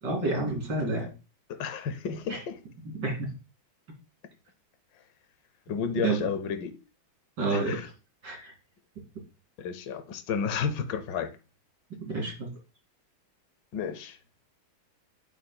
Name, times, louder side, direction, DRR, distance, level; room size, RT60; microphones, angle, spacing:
voice 1, 0.0-1.1 2.3-2.4 2.8-3.3 6.0-6.3 7.4-7.8 8.2-8.5 11.9-12.5, right 3 dB, 60° right, 3.1 m, -29 dB
voice 2, 1.5-2.6 5.7-6.8 7.5-7.9 9.6-11.4 13.7-14.2, left 6 dB, 70° left, 1.5 m, -32 dB
11.5 x 4.4 x 2.2 m
omnidirectional pair, 2.2 m